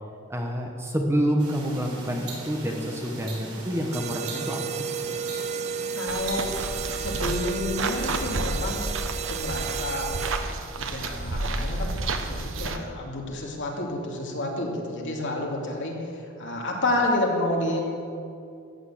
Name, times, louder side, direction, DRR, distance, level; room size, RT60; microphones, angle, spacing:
voice 1, 0.3-4.8, equal, 10° right, 1 dB, 1.1 m, -28 dB
sound 1, 1.4-7.4, right 3 dB, 85° right, 3.8 m, -40 dB
sound 2, 3.9-10.7, right 7 dB, 30° right, 0.4 m, -33 dB
voice 2, 5.9-6.5 6.9-8.9 9.3-10.2 10.8-17.8, left 1 dB, 55° left, -1 dB, 2.5 m, -29 dB
sound 3, 6.1-12.8, right 2 dB, 60° right, 1.0 m, -31 dB
14.5 x 9.3 x 7.6 m, 2.5 s
head